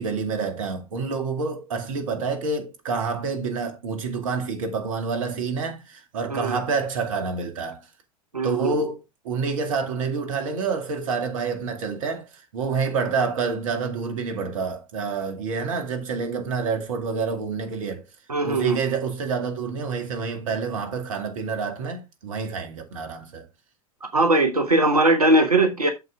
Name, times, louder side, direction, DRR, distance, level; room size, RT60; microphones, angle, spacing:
voice 1, 0.0-7.8 8.4-9.0 9.2-18.0 18.4-23.5, right 5 dB, 60° right, 2.3 m, -28 dB
voice 2, 8.3-8.8 18.3-18.8 24.1-25.9, right 2 dB, 85° right, 1.2 m, -20 dB
8.2 x 6.9 x 3.6 m
figure-of-eight pair, 85°, 19 cm